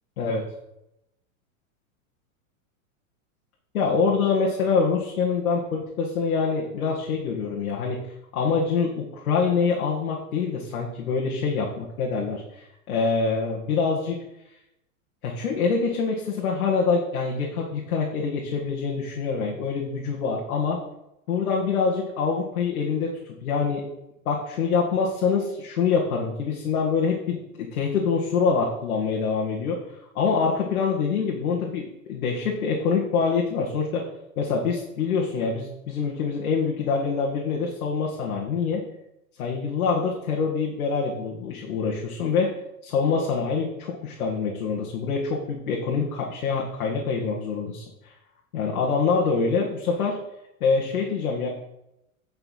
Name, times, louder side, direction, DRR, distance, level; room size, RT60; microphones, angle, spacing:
voice 1, 3.7-8.0 8.3-14.2 15.2-20.8 21.3-23.8 24.3-29.8 30.2-34.1 34.4-38.8 39.4-42.5 42.8-48.1 48.5-50.2 50.6-51.5, left 5 dB, 80° left, -2 dB, 1.9 m, -25 dB
9.1 x 5.6 x 5.6 m, 0.85 s
supercardioid pair, 180°, 43 cm